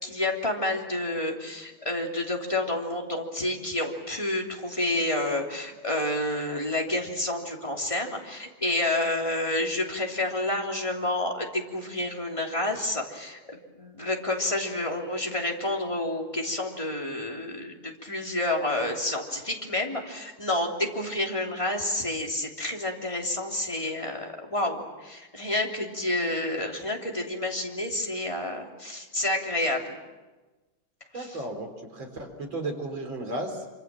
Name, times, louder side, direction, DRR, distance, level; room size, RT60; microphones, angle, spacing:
voice 1, 0.0-30.0 31.1-31.4, left 1 dB, 15° left, 0 dB, 3.2 m, -29 dB
voice 2, 31.1-33.6, right 2 dB, 60° right, 4 dB, 4.7 m, -34 dB
26.5 x 25.5 x 7.6 m, 1.2 s
omnidirectional pair, 2.4 m